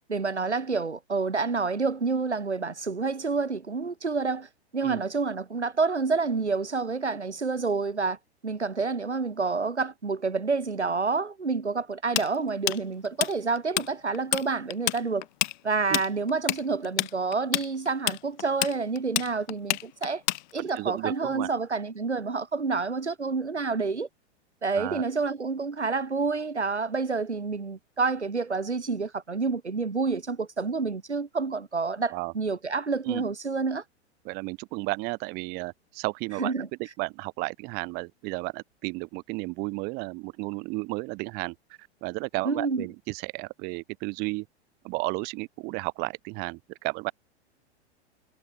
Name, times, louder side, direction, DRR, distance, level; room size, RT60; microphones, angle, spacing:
voice 1, 0.1-8.2 8.4-15.3 15.6-20.2 20.5-24.1 24.6-33.8 36.4-36.7 42.4-42.9, right 4 dB, 85° right, 1.8 m, -28 dB
Tools, 12.2-13.9 14.1-14.5 14.7-20.8, left 18 dB, 45° left, 0.8 m, -28 dB
voice 2, 20.6-21.5 24.7-25.0 32.1-32.3 33.0-33.2 34.2-36.5 37.0-44.5 44.8-47.1, right 27 dB, 30° right, 0.8 m, -33 dB
figure-of-eight pair, 100°, 33 cm